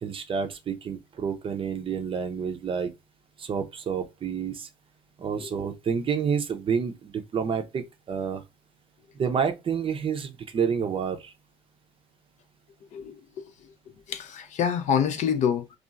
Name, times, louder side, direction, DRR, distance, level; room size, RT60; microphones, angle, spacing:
voice 1, 0.0-2.9 3.4-4.7 5.2-8.4 9.2-11.3, right 6 dB, 35° right, 0.5 m, -29 dB
voice 2, 12.9-13.4 14.1-15.7, left 7 dB, 50° left, 0.4 m, -27 dB
2.8 x 2.3 x 2.4 m
hypercardioid pair, 60°, 16 cm